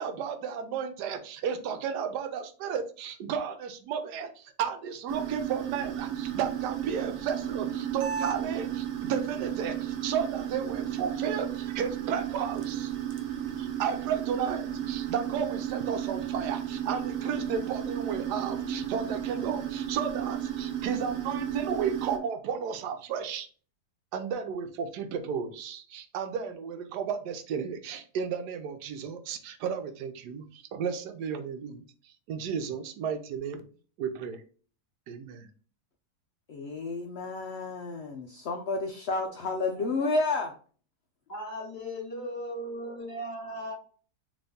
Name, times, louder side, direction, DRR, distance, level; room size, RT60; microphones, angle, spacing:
voice 1, 0.0-12.9 13.6-23.5 24.1-31.8 32.3-33.6 34.0-34.4 35.1-35.5, right 7 dB, 90° right, 8 dB, 1.2 m, -33 dB
sound 1, 5.1-22.2, right 10 dB, 65° right, 1.0 m, -33 dB
voice 2, 36.5-40.5, left 3 dB, 70° left, 3 dB, 0.6 m, -31 dB
voice 3, 41.3-43.7, equal, 40° left, -3 dB, 2.3 m, -37 dB
4.0 x 3.0 x 3.5 m, 0.41 s
omnidirectional pair, 1.7 m